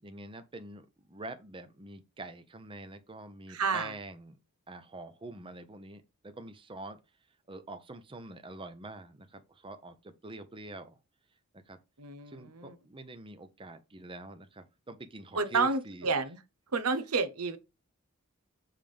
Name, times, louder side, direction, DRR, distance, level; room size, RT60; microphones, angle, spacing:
voice 1, 0.0-4.4 4.7-7.0 7.5-11.0 11.7-11.8 12.3-16.1, right 2 dB, 25° right, 0.8 m, -45 dB
voice 2, 3.5-3.9 12.0-12.7 15.4-16.4 16.7-17.6, right 4 dB, 80° right, 1.0 m, -30 dB
7.4 x 3.5 x 5.1 m
head